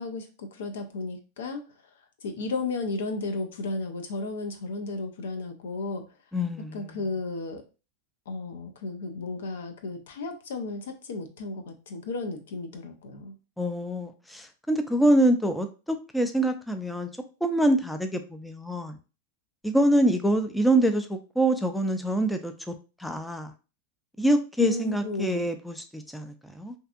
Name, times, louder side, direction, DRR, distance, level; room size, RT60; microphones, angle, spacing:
voice 1, 0.0-1.6 2.2-6.0 6.7-7.6 8.3-13.3 24.6-25.5, left 3 dB, 80° left, 6 dB, 0.5 m, -33 dB
voice 2, 6.3-7.0 13.6-17.1 17.4-19.0 19.6-22.7 23.0-23.5 24.2-26.7, right 1 dB, 5° left, 6 dB, 0.4 m, -25 dB
2.6 x 2.4 x 2.4 m, 0.32 s
hypercardioid pair, 110°, 0 cm